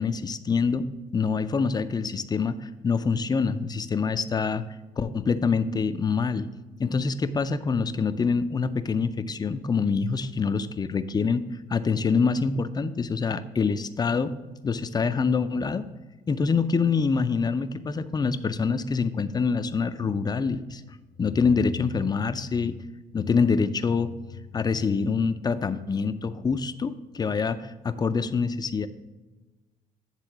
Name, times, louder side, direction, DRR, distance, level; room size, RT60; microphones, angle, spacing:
voice 1, 0.0-4.6 5.0-6.5 6.8-11.4 11.7-14.3 14.6-15.8 16.3-20.8 21.2-22.7 23.1-24.1 24.5-28.9, left 5 dB, 25° left, 11 dB, 0.5 m, -25 dB
9.8 x 3.7 x 5.9 m, 1.2 s
cardioid pair, 110°, 17 cm